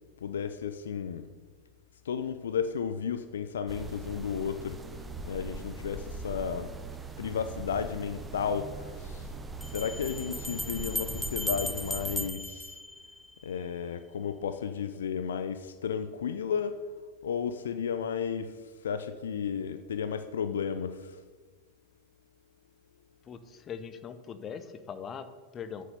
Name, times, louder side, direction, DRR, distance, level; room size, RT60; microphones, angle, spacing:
voice 1, 0.2-1.3 2.1-4.8 5.2-6.7 7.2-9.3 9.7-12.7 13.4-16.7 17.2-18.5 18.8-21.1, left 7 dB, 65° left, 11 dB, 0.5 m, -33 dB
sound 1, 3.7-12.3, right 3 dB, 10° right, 0.9 m, -41 dB
sound 2, 9.6-13.6, left 1 dB, 5° left, 0.3 m, -37 dB
voice 2, 23.2-25.8, left 7 dB, 25° left, 11 dB, 0.8 m, -41 dB
9.2 x 6.6 x 6.8 m, 1.4 s
figure-of-eight pair, 90°, 0 cm